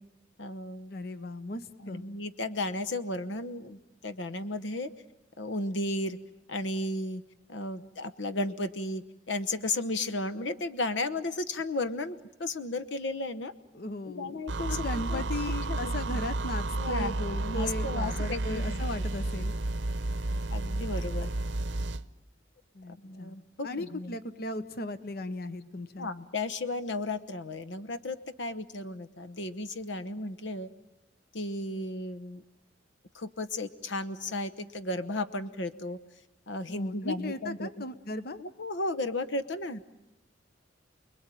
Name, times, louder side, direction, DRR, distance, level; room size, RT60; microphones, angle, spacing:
voice 1, 0.4-0.9 1.8-4.9 5.4-6.2 6.5-7.2 7.5-13.5 14.1-15.2 15.7-15.9 16.8-18.8 20.5-21.3 23.0-24.2 26.0-30.7 31.3-32.4 33.1-36.0 36.5-37.7 38.4-39.8, left 2 dB, 75° left, 10 dB, 1.0 m, -34 dB
voice 2, 0.9-2.0 13.7-19.5 22.7-23.4 23.6-26.1 36.7-38.4, left 1 dB, 55° left, 13 dB, 1.0 m, -37 dB
sound 1, 14.5-22.0, right 2 dB, 70° right, 0.9 m, -31 dB
29.5 x 21.5 x 9.1 m, 0.96 s
head